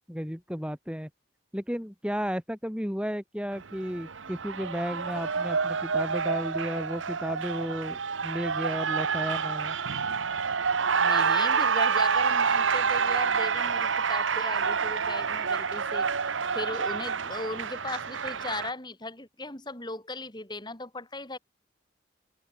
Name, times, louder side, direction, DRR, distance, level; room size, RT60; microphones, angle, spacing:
voice 1, 0.1-1.1 1.5-9.8, equal, 5° right, 4.2 m, -33 dB
Cheering, 3.5-18.7, right 5 dB, 85° right, 1.1 m, -28 dB
voice 2, 11.0-21.4, left 2 dB, 25° left, 3.6 m, -38 dB
head